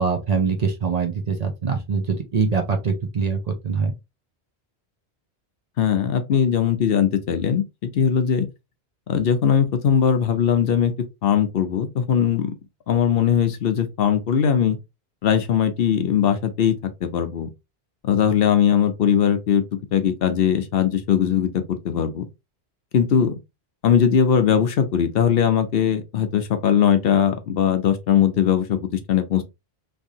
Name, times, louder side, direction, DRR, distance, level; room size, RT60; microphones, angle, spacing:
voice 1, 0.0-3.9, right 5 dB, 45° right, 0.7 m, -23 dB
voice 2, 5.8-8.5 9.1-10.9 11.2-12.5 12.9-14.8 15.2-17.5 18.0-22.3 22.9-23.3 23.8-28.8 29.1-29.4, left 8 dB, 70° left, 0.8 m, -20 dB
3.3 x 2.6 x 2.7 m
omnidirectional pair, 1.1 m